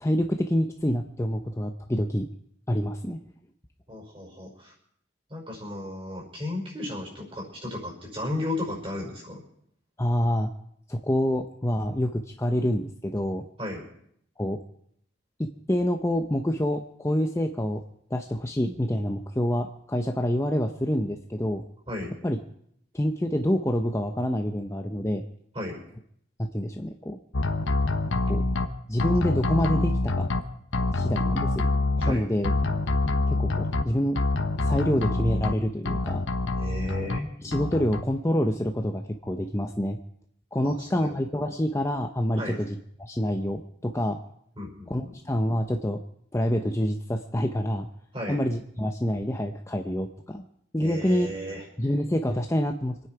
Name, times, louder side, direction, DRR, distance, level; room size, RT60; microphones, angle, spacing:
voice 1, 0.0-2.3 2.7-3.2 10.0-10.5 10.9-13.4 14.4-14.6 15.4-17.8 18.1-21.6 22.2-22.4 22.9-25.2 26.4-27.2 28.3-28.4 28.9-30.3 30.9-31.6 32.1-32.5 33.3-34.2 34.6-36.3 37.1-40.0 40.5-44.2 44.9-46.0 46.3-47.9 48.3-50.4 50.7-51.3 51.8-53.1, equal, 15° left, 4 dB, 0.7 m, -27 dB
voice 2, 3.9-4.7 5.3-9.4 13.6-13.9 21.9-22.1 25.5-25.8 32.0-32.3 36.6-37.2 40.6-41.2 42.4-42.6 44.6-45.2 48.1-48.4 50.8-51.6, left 1 dB, 25° right, 0 dB, 5.4 m, -34 dB
sound 1, 27.3-28.7 29.0-30.4 30.7-32.1 32.4-33.8 34.2-35.5 35.9-37.2 37.5-38.0, left 2 dB, 70° left, 1.0 m, -26 dB
26.0 x 9.7 x 4.9 m, 0.70 s
head